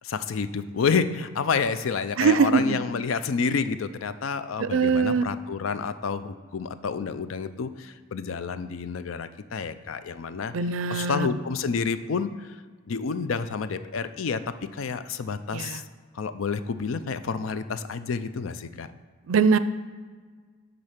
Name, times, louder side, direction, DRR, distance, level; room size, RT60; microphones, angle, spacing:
voice 1, 0.0-10.5 10.9-12.6 12.9-14.4 14.7-15.8 16.1-18.9, left 5 dB, 85° left, 12 dB, 0.5 m, -29 dB
voice 2, 2.2-2.8 4.6-5.3 10.5-11.3 15.5-15.8 19.3-19.6, right 5 dB, 85° right, 13 dB, 0.4 m, -22 dB
9.7 x 4.0 x 5.8 m, 1.6 s
head